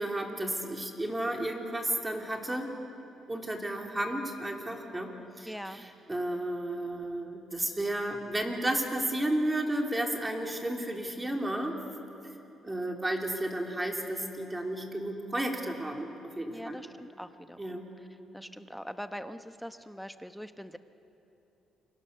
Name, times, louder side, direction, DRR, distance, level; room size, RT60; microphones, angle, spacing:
voice 1, 0.0-2.7 3.3-11.8 12.6-16.8 17.6-17.9, right 1 dB, 15° right, 2 dB, 3.5 m, -33 dB
voice 2, 5.4-5.8 16.5-17.8 18.3-20.8, equal, ahead, 9 dB, 1.1 m, -42 dB
29.0 x 24.0 x 6.9 m, 3.0 s
cardioid pair, 90°, 0 cm